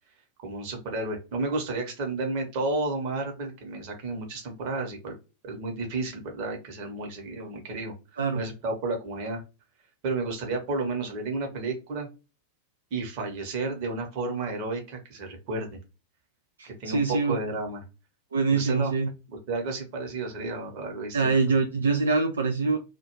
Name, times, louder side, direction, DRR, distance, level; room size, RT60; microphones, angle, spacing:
voice 1, 0.4-5.1 5.4-9.4 10.0-12.1 12.9-15.8 16.6-17.8 18.5-18.9 19.5-21.3, right 2 dB, 45° right, 2 dB, 1.1 m, -32 dB
voice 2, 16.6-17.4 18.3-19.1 21.1-22.8, right 4 dB, 70° right, 4 dB, 0.4 m, -24 dB
2.4 x 2.3 x 2.9 m, 0.29 s
figure-of-eight pair, 90°, 0 cm